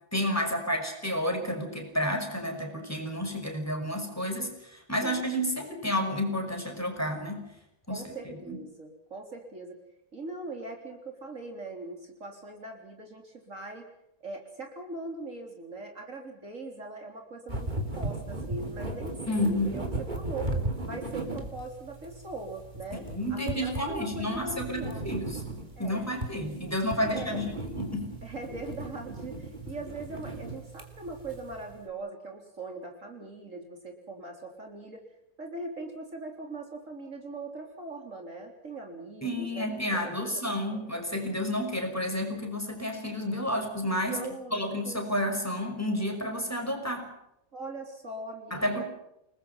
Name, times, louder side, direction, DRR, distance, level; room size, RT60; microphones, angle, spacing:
voice 1, 0.1-7.5 7.9-8.0 8.5-8.6 19.3-19.9 22.9-25.4 25.8-28.1 39.2-44.2 44.5-47.1 48.5-48.8, left 1 dB, 10° left, 4 dB, 5.7 m, -31 dB
voice 2, 7.9-9.8 10.1-13.9 14.2-20.5 20.8-23.0 23.3-25.1 25.8-26.1 27.0-27.5 28.2-35.0 35.4-40.4 40.7-41.0 44.1-45.0 47.5-48.8, right 2 dB, 50° right, 2 dB, 4.0 m, -41 dB
sound 1, 17.5-31.8, right 2 dB, 25° right, 3.4 m, -37 dB
29.5 x 20.5 x 5.8 m, 0.82 s
omnidirectional pair, 1.8 m